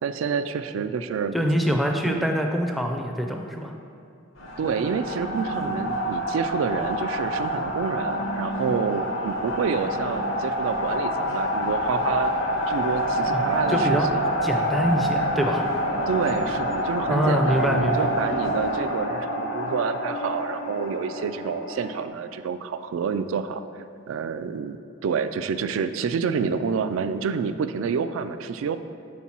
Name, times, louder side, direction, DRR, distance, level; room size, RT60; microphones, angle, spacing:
voice 1, 0.0-1.4 2.0-2.3 4.6-12.3 12.7-14.3 16.1-23.6 24.1-24.8 25.0-28.8, right 6 dB, 75° right, 11 dB, 0.3 m, -28 dB
voice 2, 1.3-3.7 13.3-13.4 13.7-14.1 14.4-15.7 17.1-18.1, equal, ahead, 2 dB, 0.4 m, -24 dB
sound 1, 4.4-22.1, equal, 75° left, 0.8 m, -27 dB
4.5 x 4.2 x 5.8 m, 2.4 s
head